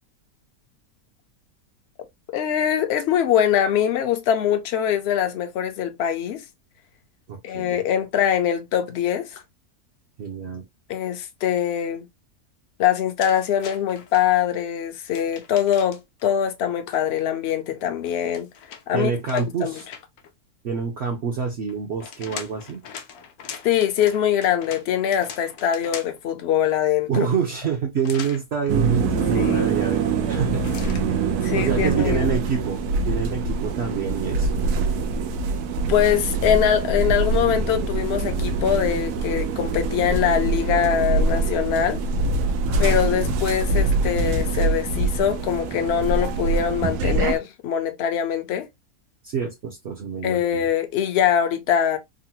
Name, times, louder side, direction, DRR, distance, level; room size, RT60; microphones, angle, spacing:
voice 1, 2.3-6.4 7.4-9.4 10.9-12.1 12.8-18.5 18.9-19.8 23.6-27.1 29.3-29.7 31.4-32.4 35.9-42.0 42.8-48.7 50.2-52.0, left 9 dB, 60° left, 0.7 m, -23 dB
voice 2, 7.3-7.8 10.2-10.6 18.9-19.8 20.6-22.8 27.1-30.7 31.0-31.2 31.5-34.5 42.6-43.3 49.2-50.7, right 6 dB, 60° right, 0.7 m, -27 dB
sound 1, 13.2-14.2 15.1-16.2 18.0-20.3 21.7-26.3 28.0-28.4 30.6-31.1, left 7 dB, 80° left, 1.1 m, -40 dB
sound 2, 28.7-47.4, right 3 dB, 90° right, 1.1 m, -24 dB
3.8 x 2.0 x 2.7 m
omnidirectional pair, 1.6 m